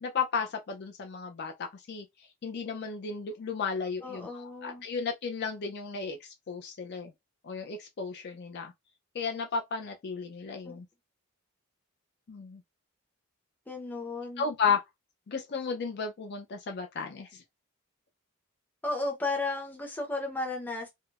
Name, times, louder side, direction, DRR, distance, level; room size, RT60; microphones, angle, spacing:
voice 1, 0.0-2.1 2.4-7.1 7.4-8.7 9.1-10.8 12.3-12.6 14.4-14.8 15.3-17.4, left 5 dB, 50° left, 0.4 m, -34 dB
voice 2, 4.0-4.9 10.7-10.8 13.7-14.5 18.8-20.9, left 2 dB, 10° left, 0.7 m, -34 dB
3.5 x 2.0 x 2.4 m
head